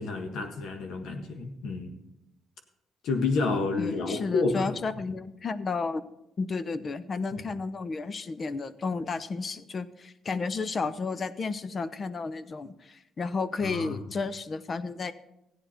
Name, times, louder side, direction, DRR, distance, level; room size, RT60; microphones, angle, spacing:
voice 1, 0.0-1.9 3.0-4.7 7.3-7.4 13.6-14.0, left 3 dB, 80° left, 5 dB, 1.6 m, -29 dB
voice 2, 3.7-6.0 6.4-15.1, left 4 dB, 40° left, 14 dB, 0.7 m, -32 dB
14.5 x 9.5 x 4.4 m, 0.87 s
cardioid pair, 90°, 0 cm